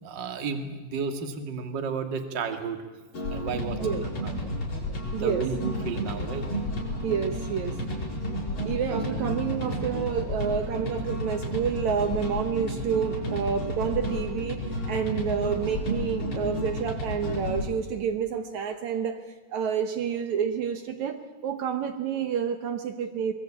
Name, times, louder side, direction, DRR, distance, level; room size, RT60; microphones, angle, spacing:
voice 1, 0.0-2.8 3.3-4.6 5.0-6.5, right 5 dB, 40° right, 7 dB, 1.6 m, -33 dB
sound 1, 3.1-17.7, equal, 30° left, 6.3 m, -32 dB
voice 2, 3.7-4.0 5.1-5.5 7.0-7.8 8.7-14.6 14.9-19.2 19.5-23.3, right 7 dB, 75° right, 8 dB, 1.7 m, -29 dB
23.0 x 22.5 x 8.8 m, 1.2 s
omnidirectional pair, 4.9 m